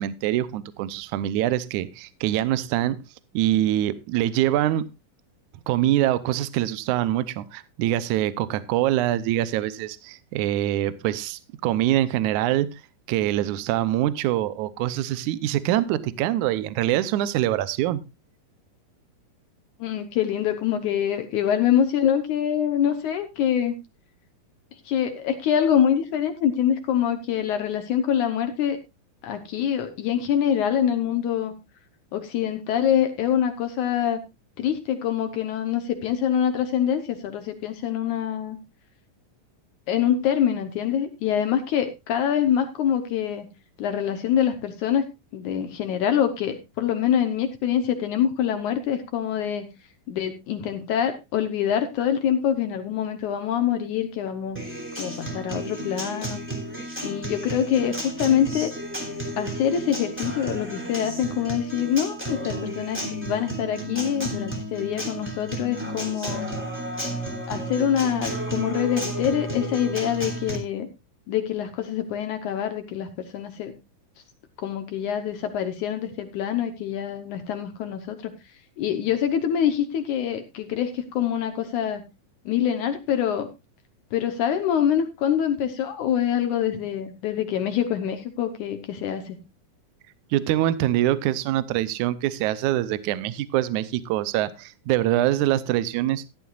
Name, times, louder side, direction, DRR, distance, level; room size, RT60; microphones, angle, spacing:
voice 1, 0.0-3.0 3.3-4.9 5.7-12.8 13.1-18.0 90.3-96.2, right 13 dB, 75° right, 1.9 m, -24 dB
voice 2, 19.8-23.8 24.9-28.8 29.2-31.6 32.1-34.2 34.6-38.6 39.9-43.5 43.8-45.1 45.3-49.7 50.1-54.6 55.0-56.4 57.0-58.7 59.4-66.5 67.5-70.9 71.3-73.7 74.6-78.3 78.8-82.0 82.5-83.5 84.1-89.4, left 9 dB, 70° left, 2.3 m, -25 dB
Acoustic guitar, 54.5-70.6, right 1 dB, 5° right, 2.6 m, -32 dB
15.5 x 11.5 x 2.4 m
omnidirectional pair, 4.0 m